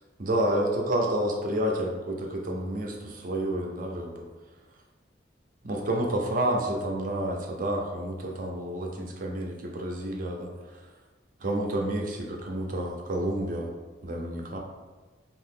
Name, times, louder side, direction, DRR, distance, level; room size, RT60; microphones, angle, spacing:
voice 1, 0.2-4.3 5.6-10.5 11.4-13.7 14.0-14.6, right 1 dB, 45° right, 1 dB, 0.5 m, -29 dB
2.8 x 2.5 x 3.7 m, 1.2 s
head